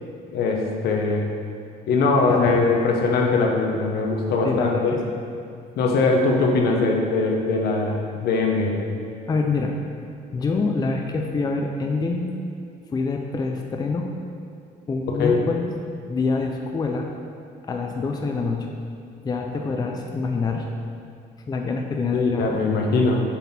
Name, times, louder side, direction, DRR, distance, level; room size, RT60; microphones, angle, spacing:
voice 1, 0.3-1.2 1.9-4.9 5.8-8.8 15.1-15.4 22.1-23.2, left 3 dB, 70° left, 1 dB, 1.0 m, -21 dB
voice 2, 2.3-2.7 4.4-5.0 9.3-9.7 10.3-12.2 12.9-14.1 14.9-15.7 16.1-17.1 17.7-18.7 19.2-20.7 21.5-22.7, left 4 dB, 25° left, 2 dB, 0.5 m, -25 dB
7.1 x 4.2 x 4.2 m, 2.4 s
cardioid pair, 110°, 17 cm